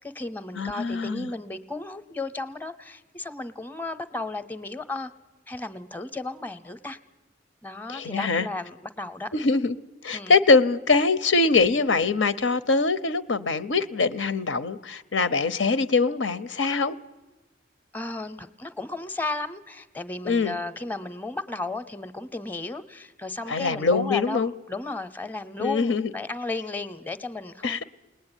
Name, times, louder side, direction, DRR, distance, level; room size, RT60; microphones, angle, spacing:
voice 1, 0.0-5.1 5.5-7.0 7.6-9.3 10.1-10.4 17.9-27.8, left 2 dB, 10° left, 12 dB, 0.8 m, -34 dB
voice 2, 0.6-1.3 7.9-8.5 9.3-9.8 10.0-16.9 20.2-20.5 23.5-24.5 25.6-26.1 27.6-27.8, left 4 dB, 80° left, 12 dB, 0.8 m, -23 dB
29.0 x 20.0 x 10.0 m, 1.2 s
head